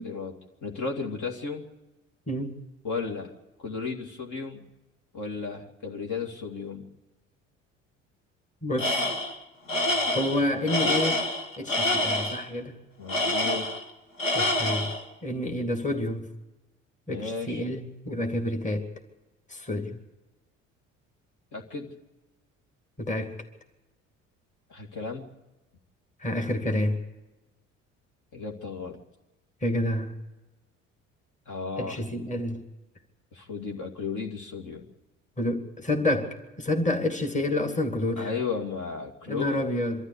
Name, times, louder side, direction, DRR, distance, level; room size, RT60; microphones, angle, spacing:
voice 1, 0.6-1.6 2.8-3.3 3.6-4.7 5.1-6.8 13.0-13.7 17.1-17.6 21.5-21.9 24.7-25.3 28.3-29.0 31.5-32.0 33.3-34.8 38.2-39.7, left 4 dB, 50° left, 2 dB, 2.5 m, -34 dB
voice 2, 2.3-2.6 8.6-9.0 10.1-11.2 11.6-12.8 14.3-14.9 15.2-16.3 17.1-18.9 19.5-20.0 23.0-23.4 26.2-27.0 29.6-30.1 31.8-32.6 35.4-38.3 39.3-40.1, left 1 dB, 20° left, 4 dB, 2.4 m, -28 dB
Tools, 8.8-9.4 9.7-12.4 13.1-13.9 14.2-15.0, left 1 dB, 85° left, 1.8 m, -26 dB
24.0 x 13.5 x 8.3 m, 1.1 s
figure-of-eight pair, 55°, 38 cm